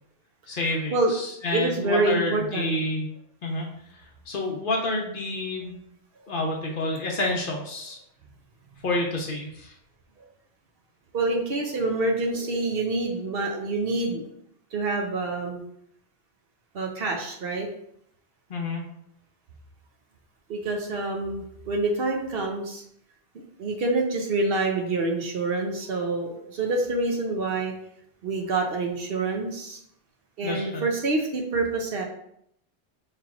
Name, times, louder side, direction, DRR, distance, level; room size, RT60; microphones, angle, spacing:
voice 1, 0.5-3.1 3.4-3.7 4.3-5.8 6.3-8.0 8.8-9.7 18.5-18.8 30.4-30.8, left 2 dB, 55° left, 0 dB, 0.9 m, -29 dB
voice 2, 1.5-2.7 11.1-14.2 14.7-15.6 16.7-17.7 20.5-22.8 23.6-27.7 28.2-29.8 30.4-32.0, right 2 dB, 60° right, 2 dB, 0.9 m, -26 dB
5.6 x 3.2 x 2.4 m, 0.72 s
omnidirectional pair, 1.1 m